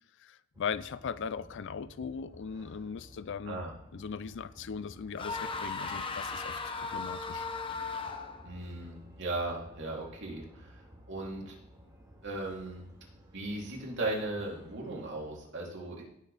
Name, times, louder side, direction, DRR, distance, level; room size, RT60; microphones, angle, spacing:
voice 1, 0.2-3.6 3.9-6.6 6.9-7.5, left 6 dB, 60° left, 0.4 m, -39 dB
sound 1, 0.5-15.4, equal, 20° right, 3.5 m, -54 dB
sound 2, 5.2-8.5, left 4 dB, 25° left, 0.9 m, -37 dB
voice 2, 8.4-11.6 12.2-12.8 13.3-16.0, right 2 dB, 60° right, 3.1 m, -37 dB
17.0 x 6.8 x 3.4 m
head